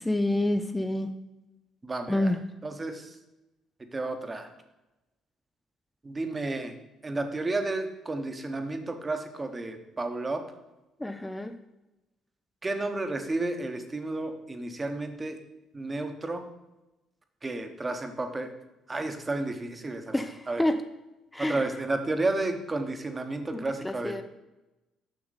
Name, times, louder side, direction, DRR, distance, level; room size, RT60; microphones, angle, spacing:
voice 1, 0.1-1.1 2.1-2.4 11.0-11.5 20.1-20.8 21.3-21.6 23.8-24.2, left 1 dB, 10° left, 8 dB, 0.4 m, -27 dB
voice 2, 1.8-2.4 2.6-3.2 3.9-4.5 6.0-6.7 7.0-10.4 12.6-15.4 15.7-16.4 17.4-18.5 18.9-20.6 21.4-24.2, right 2 dB, 25° right, 6 dB, 0.9 m, -32 dB
6.2 x 5.9 x 4.1 m, 1.0 s
supercardioid pair, 75°, 0 cm